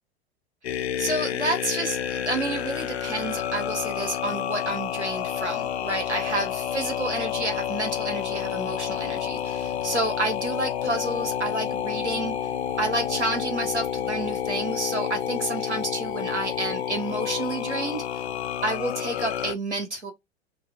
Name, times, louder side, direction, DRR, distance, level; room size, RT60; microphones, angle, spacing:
sound 1, 0.6-19.5, left 10 dB, 70° left, 0.5 m, -29 dB
voice 1, 0.7-12.3 12.8-18.2 18.6-20.1, right 2 dB, 90° right, 1.0 m, -30 dB
2.5 x 2.0 x 3.4 m
figure-of-eight pair, 90°, 33 cm